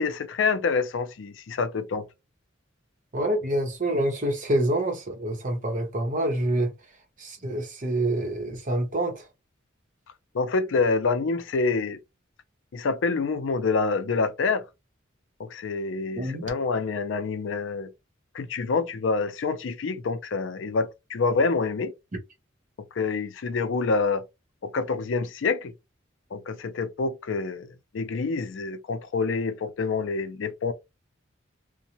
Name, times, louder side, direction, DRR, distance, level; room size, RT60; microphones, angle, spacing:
voice 1, 0.0-2.1 10.3-12.0 12.7-14.6 15.4-17.9 18.3-21.9 23.0-24.2 24.6-25.7 26.3-30.7, left 4 dB, 75° left, 0.4 m, -27 dB
voice 2, 3.1-6.7 7.2-9.3 16.1-16.5, right 1 dB, 40° right, 0.8 m, -27 dB
2.6 x 2.1 x 2.8 m
head